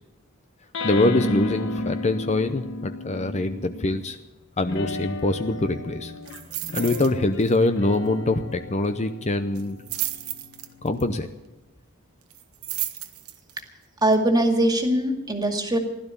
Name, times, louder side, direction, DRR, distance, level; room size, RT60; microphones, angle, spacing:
sound 1, 0.7-4.1 4.6-11.4, left 2 dB, 60° left, 1.6 m, -33 dB
voice 1, 0.8-4.2 4.6-6.1 6.7-9.8 10.8-11.3, left 2 dB, 30° left, 9 dB, 0.7 m, -24 dB
sound 2, 6.3-7.1 7.4-7.7 7.9-8.0 9.5-11.0 12.3-13.6 14.1-14.2, right 14 dB, 80° right, 1.2 m, -32 dB
voice 2, 14.0-15.8, right 1 dB, 20° right, 4 dB, 2.1 m, -21 dB
16.5 x 12.0 x 7.1 m, 1.1 s
head